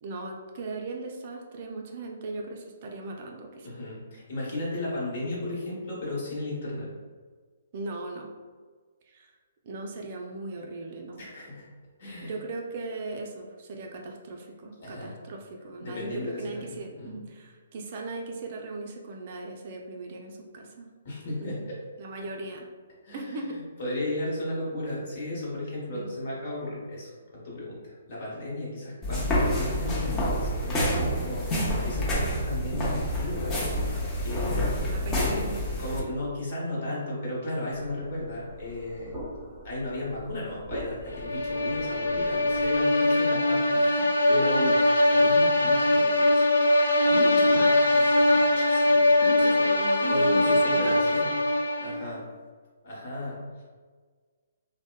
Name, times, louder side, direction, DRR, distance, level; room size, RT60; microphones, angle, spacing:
voice 1, 0.0-3.7 7.7-8.3 9.1-9.3 9.6-11.2 12.2-20.9 21.4-21.7 22.0-22.7 23.1-23.6 25.9-26.1 34.9-35.7 47.1-47.7 49.2-51.1, right 2 dB, 45° right, 1 dB, 0.4 m, -38 dB
voice 2, 3.6-6.9 11.2-11.7 12.0-12.4 14.8-15.1 15.8-17.1 21.0-21.8 23.0-34.0 34.2-35.1 35.8-39.2 39.6-44.8 45.1-46.5 47.0-49.6 50.1-51.3 51.8-52.3 52.8-53.6, left 1 dB, 55° left, -5 dB, 1.0 m, -35 dB
sound 1, 29.0-36.0, equal, 20° left, 0.6 m, -28 dB
sound 2, 37.7-42.8, equal, ahead, 1.0 m, -43 dB
sound 3, 41.1-52.1, left 1 dB, 85° left, 0.3 m, -22 dB
2.7 x 2.1 x 2.2 m, 1.5 s
hypercardioid pair, 145°, 0 cm